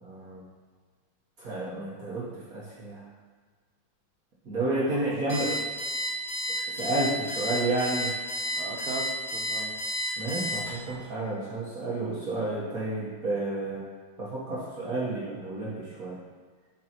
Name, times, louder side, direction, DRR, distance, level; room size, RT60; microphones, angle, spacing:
voice 1, 0.0-0.4 1.4-3.0 4.4-5.5 6.7-8.1 10.2-13.8 14.2-16.2, right 2 dB, 55° right, -7 dB, 1.0 m, -31 dB
voice 2, 4.6-5.6 8.5-9.7, right 4 dB, 75° right, 1 dB, 2.0 m, -38 dB
Alarm, 5.3-10.9, left 1 dB, 40° left, 2.7 m, -31 dB
8.1 x 5.4 x 3.0 m, 1.5 s
omnidirectional pair, 3.4 m